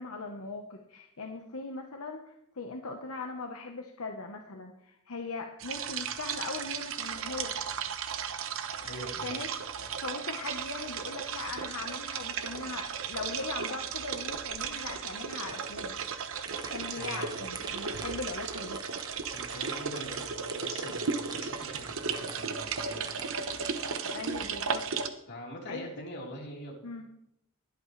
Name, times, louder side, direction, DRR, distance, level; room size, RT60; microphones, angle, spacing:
voice 1, 0.0-7.6 9.2-9.5 10.0-15.9 16.7-18.8 24.1-24.9 25.7-25.9 26.8-27.0, left 3 dB, 80° left, 3 dB, 1.1 m, -40 dB
sound 1, 5.6-25.1, right 6 dB, 65° right, 0.9 m, -35 dB
voice 2, 8.8-9.3 9.8-9.9 17.0-17.4 19.3-23.3 25.3-26.8, equal, 55° left, -3 dB, 4.0 m, -44 dB
sound 2, 14.2-24.8, right 3 dB, 20° right, 0.9 m, -47 dB
21.5 x 8.5 x 3.3 m, 0.76 s
head